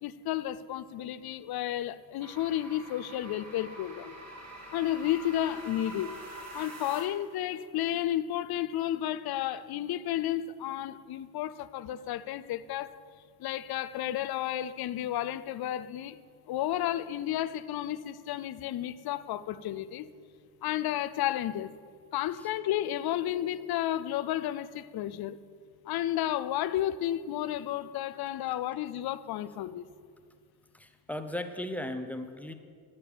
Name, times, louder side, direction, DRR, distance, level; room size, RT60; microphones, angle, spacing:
voice 1, 0.0-4.1 4.7-6.1 6.5-13.0 13.4-16.2 16.5-20.1 20.6-21.7 22.1-25.4 25.9-29.9, left 12 dB, 50° left, 0.6 m, -32 dB
sound 1, 2.2-7.3, right 1 dB, 30° right, 2.4 m, -45 dB
voice 2, 30.7-32.5, left 1 dB, 5° left, 0.8 m, -37 dB
10.5 x 7.2 x 6.9 m
supercardioid pair, 75°, 49 cm